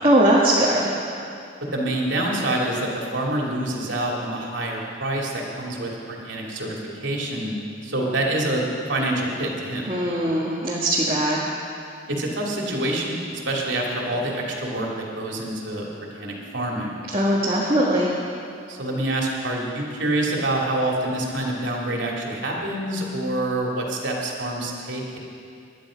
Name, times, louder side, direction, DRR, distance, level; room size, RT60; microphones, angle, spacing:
voice 1, 0.0-0.9 9.9-11.5 17.1-18.1, right 1 dB, 30° right, -5 dB, 1.6 m, -20 dB
voice 2, 1.7-6.7 7.0-7.5 7.8-8.6 8.9-9.9 10.3-10.4 12.1-16.9 18.7-25.2, right 1 dB, 85° right, -2 dB, 2.7 m, -26 dB
20.0 x 11.5 x 5.2 m, 2.5 s
head